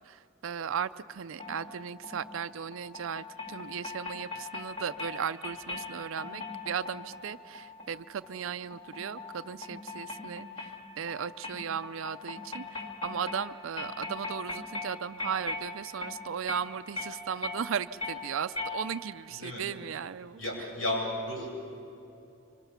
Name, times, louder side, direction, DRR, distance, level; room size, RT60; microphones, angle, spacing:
voice 1, 0.0-20.4, right 7 dB, 75° right, 13 dB, 0.4 m, -36 dB
sound 1, 1.4-19.3, left 3 dB, 25° left, 2.3 m, -41 dB
voice 2, 19.3-19.6 20.4-21.5, left 1 dB, 80° left, -3 dB, 8.0 m, -33 dB
25.5 x 25.5 x 5.7 m, 2.8 s
head